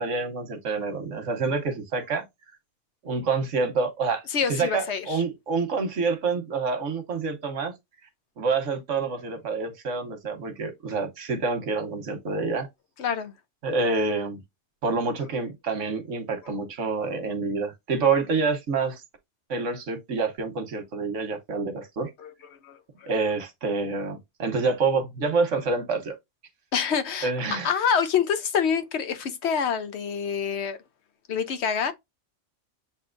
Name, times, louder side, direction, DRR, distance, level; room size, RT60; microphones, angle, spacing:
voice 1, 0.0-2.2 3.0-4.2 4.5-7.7 8.4-12.7 13.6-14.4 14.8-19.0 19.5-22.1 23.1-26.2 27.2-27.7, right 4 dB, 85° right, 1.4 m, -27 dB
voice 2, 4.3-5.2 13.0-13.3 22.2-22.3 22.6-23.1 26.7-27.3 27.6-30.8 31.3-31.9, left 7 dB, 70° left, 0.9 m, -26 dB
7.5 x 2.8 x 2.5 m
omnidirectional pair, 1.2 m